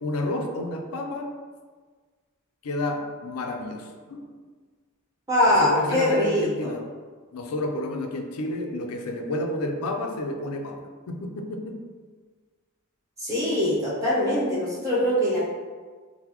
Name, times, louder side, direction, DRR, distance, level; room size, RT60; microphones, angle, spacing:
voice 1, 0.0-1.3 2.6-4.3 5.5-6.8 7.3-11.8, left 1 dB, 75° left, 4 dB, 0.4 m, -30 dB
voice 2, 5.3-6.7 13.2-15.4, left 1 dB, 15° right, -8 dB, 0.7 m, -22 dB
3.8 x 2.1 x 2.9 m, 1.5 s
head